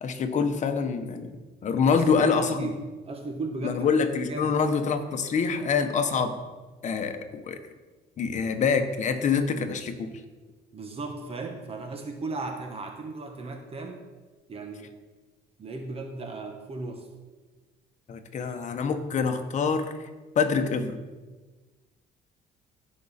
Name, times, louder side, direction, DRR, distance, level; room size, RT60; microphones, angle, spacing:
voice 1, 0.0-1.3 1.6-2.7 3.6-6.4 6.8-7.6 8.2-10.1 18.1-19.9 20.3-21.0, left 5 dB, 45° left, 7 dB, 1.1 m, -25 dB
voice 2, 1.9-4.0 4.3-4.6 10.7-14.0 14.5-14.9 15.6-17.1, right 3 dB, 35° right, 4 dB, 1.2 m, -36 dB
15.5 x 5.4 x 4.2 m, 1.3 s
cardioid pair, 110°, 17 cm